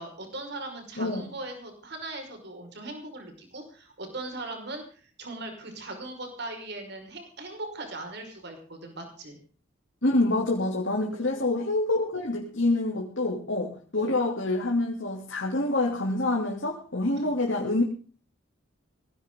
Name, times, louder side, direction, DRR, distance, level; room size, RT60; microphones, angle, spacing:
voice 1, 0.0-9.4 11.1-11.6 14.0-14.2 17.2-17.4, right 2 dB, 55° right, 5 dB, 5.5 m, -39 dB
voice 2, 10.0-17.8, left 2 dB, 60° left, -1 dB, 3.1 m, -26 dB
19.5 x 17.5 x 3.9 m, 0.42 s
head